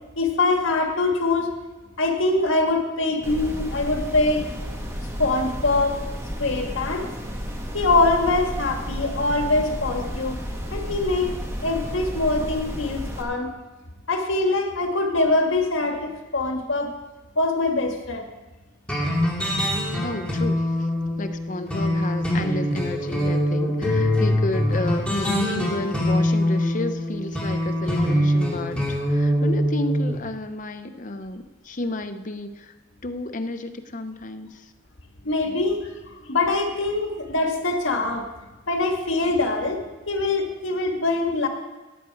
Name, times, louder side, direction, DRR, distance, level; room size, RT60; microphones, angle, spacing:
voice 1, 0.2-1.5 2.0-4.4 5.2-6.0 6.4-7.1 7.7-10.4 10.7-11.3 11.6-13.5 14.1-16.9 17.3-18.3 35.2-35.8 36.2-38.2 38.7-39.8 40.1-41.5, left 2 dB, 80° left, 3 dB, 1.7 m, -23 dB
sound 1, 3.2-13.2, equal, 15° right, 1.3 m, -32 dB
sound 2, 18.9-30.2, left 1 dB, 5° left, 2.6 m, -23 dB
voice 2, 20.0-20.7 21.2-32.7 33.0-34.5, left 2 dB, 40° left, 8 dB, 0.8 m, -31 dB
17.0 x 8.2 x 4.7 m, 1.1 s
head